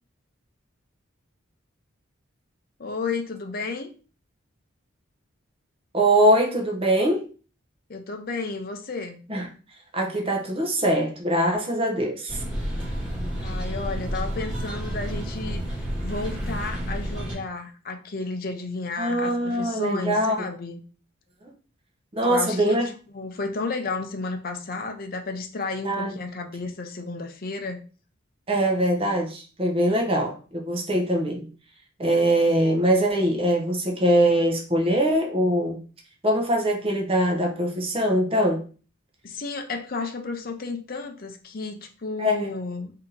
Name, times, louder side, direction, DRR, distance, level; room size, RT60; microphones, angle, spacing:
voice 1, 2.8-3.9 7.9-9.2 13.4-20.8 22.3-27.8 39.2-42.9, left 3 dB, 45° left, 0.6 m, -32 dB
voice 2, 5.9-7.3 9.3-9.5 9.9-12.4 19.0-20.4 22.1-22.8 25.8-26.1 28.5-31.5 32.0-35.8 36.2-38.6 42.2-42.5, right 1 dB, 25° right, 0.8 m, -22 dB
sound 1, 12.3-17.3, equal, 5° right, 1.9 m, -30 dB
3.4 x 2.8 x 3.8 m
head